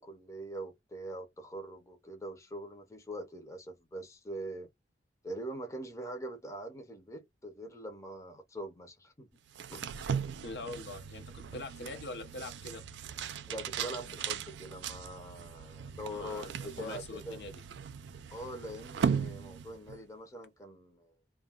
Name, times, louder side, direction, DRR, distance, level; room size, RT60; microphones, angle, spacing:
voice 1, 0.0-4.7 5.2-9.3 9.7-9.9 13.5-17.4 18.3-21.1, right 1 dB, 20° left, 0.7 m, -43 dB
sound 1, 9.5-20.0, right 7 dB, 85° right, 0.4 m, -38 dB
voice 2, 10.4-12.8 16.1-17.6, left 2 dB, 70° left, 0.8 m, -43 dB
2.3 x 2.2 x 3.5 m
head